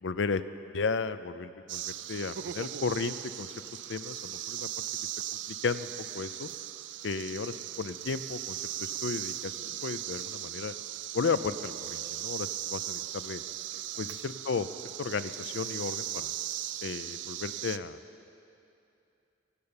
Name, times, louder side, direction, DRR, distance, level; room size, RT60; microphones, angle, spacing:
voice 1, 0.0-0.4 0.7-4.8 5.5-6.5 7.0-10.7 11.1-13.4 14.0-14.7 15.0-16.3 16.8-18.0, left 4 dB, 70° left, 13 dB, 0.5 m, -34 dB
sound 1, 1.7-17.8, right 13 dB, 70° right, 0.4 m, -38 dB
16.5 x 6.8 x 8.8 m, 2.7 s
head